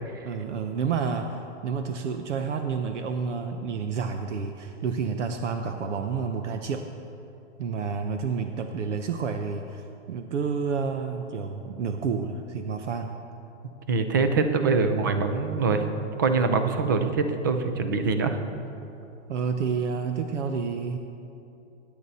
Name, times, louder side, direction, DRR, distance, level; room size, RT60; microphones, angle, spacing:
voice 1, 0.2-6.8 7.6-9.8 10.1-13.2 19.3-21.0, right 5 dB, 75° right, 6 dB, 1.0 m, -29 dB
voice 2, 13.9-15.8 16.2-18.4, right 4 dB, 20° right, 8 dB, 0.4 m, -24 dB
20.5 x 10.0 x 4.2 m, 2.8 s
hypercardioid pair, 160°, 36 cm